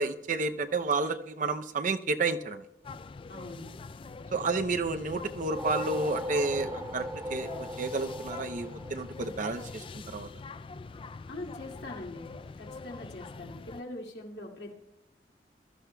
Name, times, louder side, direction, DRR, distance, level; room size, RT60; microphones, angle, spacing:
voice 1, 0.0-2.6 4.3-10.3, right 3 dB, 45° right, 9 dB, 0.6 m, -31 dB
sound 1, 2.8-13.8, left 4 dB, 30° left, 0.3 m, -44 dB
voice 2, 3.3-3.8 11.3-14.7, left 1 dB, 75° left, -2 dB, 2.4 m, -43 dB
sound 2, 5.3-9.8, equal, 20° right, 1.1 m, -38 dB
21.5 x 13.0 x 2.3 m, 0.91 s
head